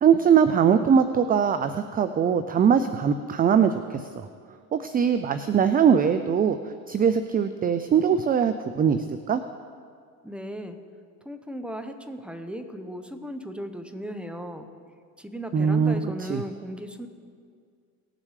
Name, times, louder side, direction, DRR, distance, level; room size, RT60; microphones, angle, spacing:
voice 1, 0.0-4.3 4.7-6.6 6.9-9.4 15.5-16.0 16.3-16.4, right 7 dB, 20° right, 11 dB, 0.4 m, -21 dB
voice 2, 10.2-10.8 11.2-14.7 15.2-17.1, equal, ahead, 7 dB, 1.0 m, -36 dB
19.0 x 7.4 x 3.3 m, 2.1 s
hypercardioid pair, 75°, 46 cm